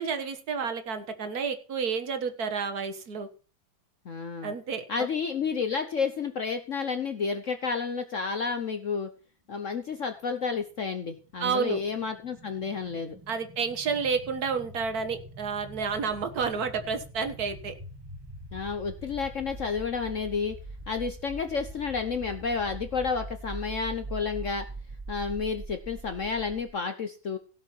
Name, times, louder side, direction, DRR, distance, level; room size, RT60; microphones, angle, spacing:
voice 1, 0.0-3.3 4.4-5.1 11.4-11.8 13.3-17.7, right 5 dB, 55° right, 8 dB, 1.8 m, -30 dB
voice 2, 4.0-4.5 4.9-9.1 9.5-13.2 18.5-20.6 20.9-24.6 25.1-27.4, left 5 dB, 50° left, 8 dB, 1.0 m, -31 dB
sound 1, 10.9-26.7, right 2 dB, 15° right, 1.9 m, -43 dB
16.5 x 5.6 x 6.1 m, 0.37 s
omnidirectional pair, 2.1 m